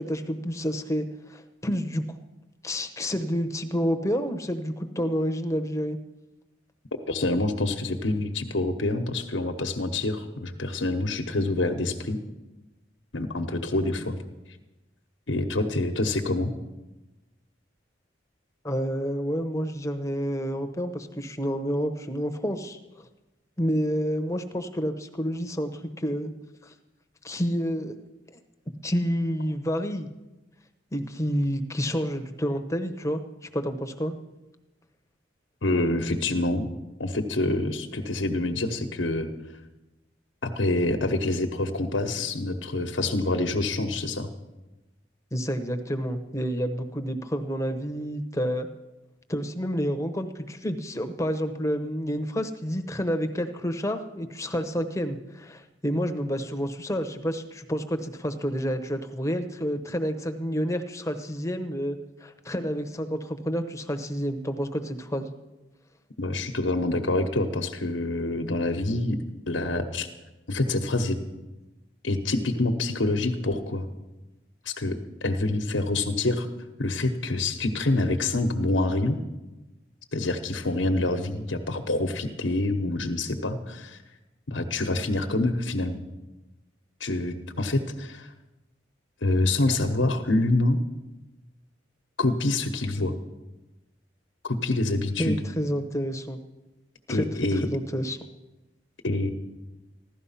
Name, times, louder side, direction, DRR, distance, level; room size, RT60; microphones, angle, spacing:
voice 1, 0.0-2.0 2.6-6.0 18.6-22.8 23.6-26.3 26.6-26.7 27.2-27.9 28.3-28.4 28.8-30.1 30.9-34.1 45.3-48.7 49.3-65.3 95.2-96.4 97.1-97.3 97.5-98.2, equal, 15° left, 6 dB, 1.0 m, -29 dB
voice 2, 7.1-12.2 13.1-14.2 15.3-16.5 35.6-36.7 37.0-39.3 40.4-44.3 66.2-69.2 69.5-70.1 70.5-71.2 72.0-73.9 74.6-76.5 76.8-79.2 80.1-84.0 84.5-86.0 87.0-88.3 89.2-90.8 92.2-93.1 94.4-95.4 97.1-97.7 99.0-99.3, left 2 dB, 80° left, 5 dB, 1.1 m, -26 dB
15.5 x 12.5 x 5.7 m, 1.0 s
head